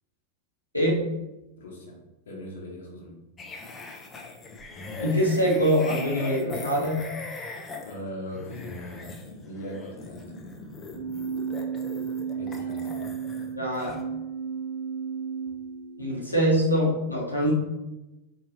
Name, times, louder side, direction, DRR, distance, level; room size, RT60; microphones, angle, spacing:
voice 1, 1.6-2.0 2.2-3.1 7.8-10.3 12.3-12.9 17.4-17.5, left 1 dB, 60° left, -2 dB, 1.0 m, -40 dB
sound 1, 3.4-13.5 13.8-14.0, left 3 dB, 20° left, 0.6 m, -40 dB
voice 2, 5.0-7.0 13.5-14.0 16.0-17.5, equal, 85° left, -4 dB, 1.0 m, -24 dB
Keyboard (musical), 10.9-16.9, right 6 dB, 60° right, 0.9 m, -34 dB
4.4 x 2.8 x 3.0 m, 0.99 s
figure-of-eight pair, 90°, 0 cm